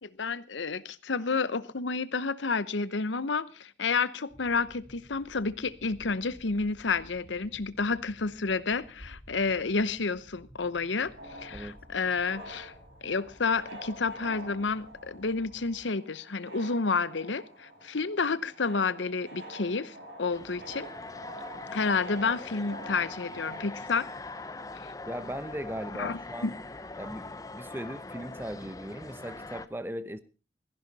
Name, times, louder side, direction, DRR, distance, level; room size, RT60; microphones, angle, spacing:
voice 1, 0.0-11.1 11.4-12.7 13.0-20.9 21.7-24.1 26.0-26.2, left 4 dB, 90° left, 16 dB, 0.9 m, -30 dB
sound 1, 4.3-15.8, equal, 40° right, 3.7 m, -55 dB
sound 2, 11.1-23.7, right 1 dB, 70° right, 7.5 m, -47 dB
sound 3, 20.3-29.7, left 2 dB, 20° left, 0.6 m, -42 dB
voice 2, 25.1-26.6 27.0-30.2, equal, 10° right, 13 dB, 0.8 m, -38 dB
16.5 x 15.5 x 4.1 m, 0.33 s
head